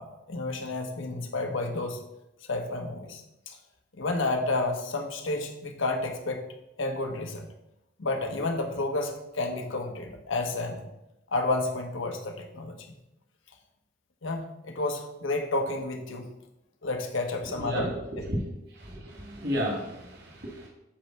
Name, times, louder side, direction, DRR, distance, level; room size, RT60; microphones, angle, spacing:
voice 1, 0.0-2.0 2.5-3.6 4.0-6.4 6.8-7.5 8.0-10.9 11.3-12.8 14.2-16.2 16.8-18.3, left 2 dB, 80° left, 4 dB, 1.1 m, -31 dB
voice 2, 18.8-20.7, equal, 55° right, -1 dB, 1.5 m, -32 dB
8.7 x 3.2 x 5.9 m, 0.90 s
head